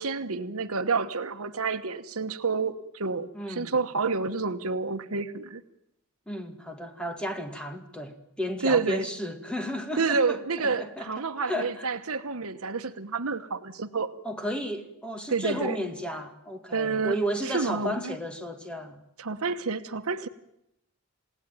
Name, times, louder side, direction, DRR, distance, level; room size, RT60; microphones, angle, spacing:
voice 1, 0.0-5.6 8.6-9.1 10.0-14.1 15.3-15.8 16.7-17.2 17.4-18.1 19.2-20.3, right 4 dB, 80° right, 1.2 m, -29 dB
voice 2, 3.3-3.8 6.3-11.9 14.2-19.0, equal, 5° left, 2.3 m, -33 dB
28.5 x 17.5 x 9.4 m
head